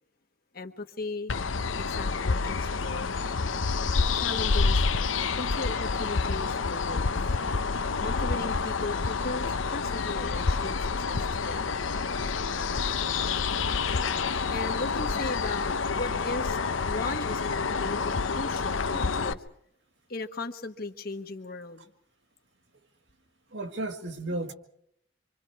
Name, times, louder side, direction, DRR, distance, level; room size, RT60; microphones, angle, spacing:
voice 1, 0.5-1.3 1.8-3.2 4.1-4.9 5.4-7.1 8.0-11.8 14.5-16.6 16.8-19.4 20.1-21.9, left 2 dB, 50° left, 6 dB, 1.4 m, -37 dB
sound 1, 1.3-19.3, left 4 dB, 90° left, 0.8 m, -28 dB
voice 2, 23.5-24.5, right 2 dB, 70° right, 4 dB, 1.9 m, -34 dB
26.5 x 25.5 x 4.7 m, 0.70 s
head